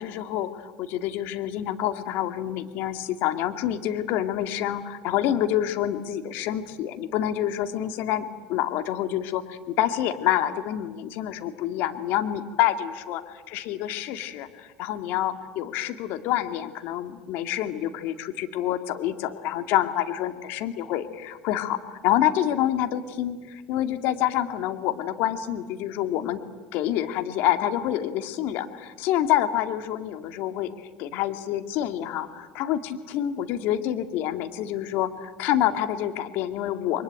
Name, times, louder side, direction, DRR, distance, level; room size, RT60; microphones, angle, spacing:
voice 1, 0.0-26.4 26.7-30.7 31.0-37.0, left 12 dB, 65° left, 9 dB, 2.1 m, -27 dB
29.5 x 23.0 x 8.9 m, 1.5 s
hypercardioid pair, 75°, 4 cm